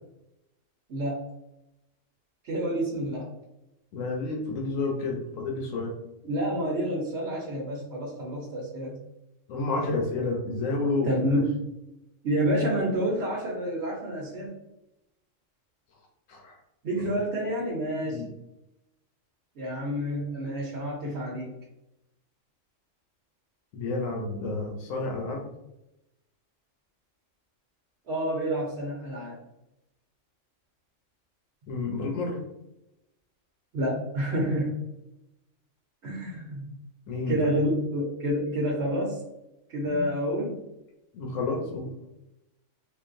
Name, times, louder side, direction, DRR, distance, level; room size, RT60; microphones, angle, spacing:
voice 1, 0.9-1.3 2.4-3.3 6.2-9.0 11.0-11.6 12.2-14.6 16.8-18.2 19.5-21.5 28.1-29.4 33.7-34.8 36.0-36.7 37.3-39.2 39.7-40.6, equal, 65° right, -2 dB, 1.0 m, -28 dB
voice 2, 3.9-5.9 9.5-11.4 16.3-16.5 16.9-17.2 18.1-18.3 23.7-25.4 31.7-32.4 37.1-37.5 39.9-40.1 41.1-41.9, left 3 dB, 85° left, 0 dB, 1.1 m, -30 dB
3.8 x 2.4 x 2.5 m, 0.89 s
omnidirectional pair, 1.3 m